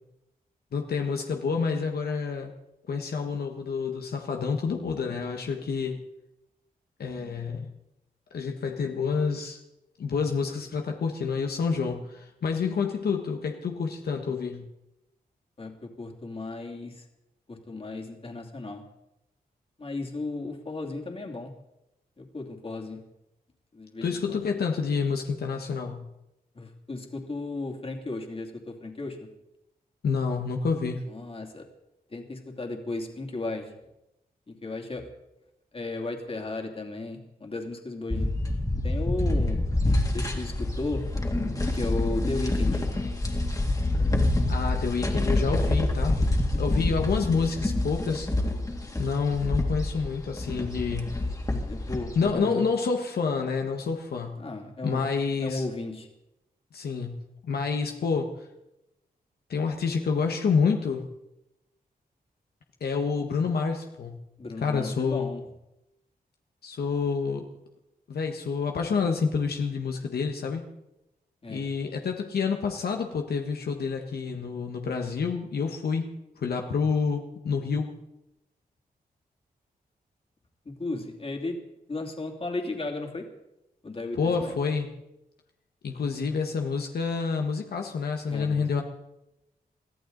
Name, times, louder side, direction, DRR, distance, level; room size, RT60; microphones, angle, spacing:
voice 1, 0.7-2.5 2.9-6.0 7.0-7.7 8.3-9.6 10.0-14.7 24.0-26.1 30.0-31.0 44.5-46.2 46.6-48.3 49.0-51.1 52.1-54.4 54.8-55.6 56.7-58.5 59.5-61.0 62.8-64.2 64.6-65.3 66.6-67.5 68.1-70.6 71.5-76.0 76.4-77.9 84.1-84.9 85.8-88.8, left 5 dB, 85° left, 3 dB, 1.5 m, -28 dB
voice 2, 15.6-17.1 17.5-18.8 19.8-21.5 22.2-23.0 23.7-24.4 26.5-29.3 31.1-31.6 32.1-33.7 34.5-35.1 35.7-38.3 38.8-39.6 40.0-41.1 41.7-42.8 51.5-52.6 54.4-55.0 55.4-56.1 64.4-65.4 71.4-71.7 80.6-81.6 81.9-83.3 83.8-84.6 88.3-88.7, left 2 dB, 35° left, 2 dB, 2.8 m, -35 dB
sound 1, 38.1-52.3, left 1 dB, 20° left, 2.3 m, -27 dB
23.0 x 15.0 x 4.0 m, 0.89 s
wide cardioid pair, 95°, 16 cm